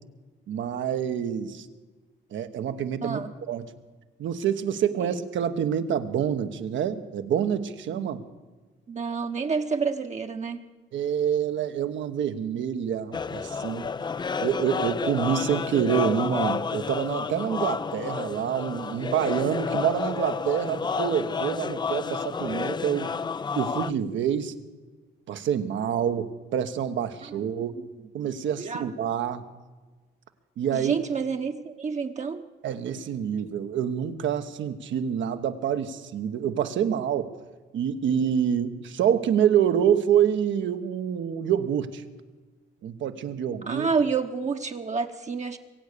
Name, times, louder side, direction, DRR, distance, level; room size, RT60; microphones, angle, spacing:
voice 1, 0.5-1.7 2.3-3.7 4.2-8.2 10.9-13.9 14.4-23.1 23.5-24.5 25.3-27.8 28.1-29.5 30.6-31.1 32.6-37.3 37.7-42.0 42.8-43.9, right 9 dB, 75° right, 9 dB, 1.1 m, -27 dB
voice 2, 8.9-10.6 27.3-27.4 28.6-28.8 30.7-32.5 43.6-45.6, right 5 dB, 35° right, 4 dB, 1.0 m, -29 dB
sound 1, 13.1-23.9, left 5 dB, 20° left, 0.4 m, -30 dB
23.0 x 8.5 x 6.7 m, 1.3 s
cardioid pair, 90°, 20 cm